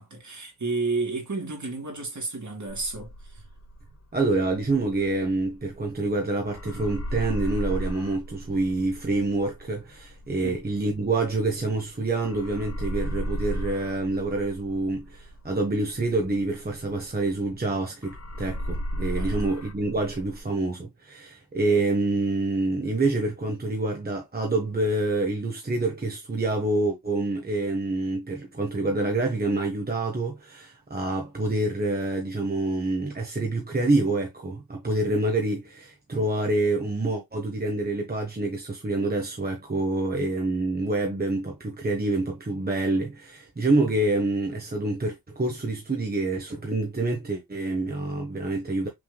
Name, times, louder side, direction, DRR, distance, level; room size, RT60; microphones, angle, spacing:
voice 1, 0.0-3.4 10.4-10.6 19.1-19.3, right 3 dB, 50° right, 2.4 m, -31 dB
sound 1, 2.7-6.2 6.5-11.9 12.2-17.7 18.0-20.4, equal, 45° left, 0.8 m, -35 dB
voice 2, 4.1-48.9, right 2 dB, 25° right, 1.2 m, -27 dB
6.2 x 3.5 x 2.3 m
wide cardioid pair, 105°, 37 cm